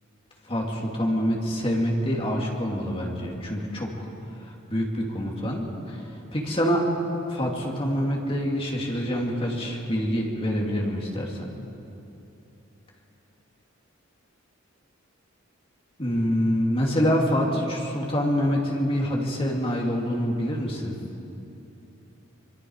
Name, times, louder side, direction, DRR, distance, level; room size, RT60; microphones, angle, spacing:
voice 1, 0.5-4.1 4.4-6.0 6.3-6.8 7.3-11.5 16.0-21.0, equal, 30° left, -1 dB, 2.8 m, -26 dB
26.0 x 23.0 x 4.9 m, 2.9 s
head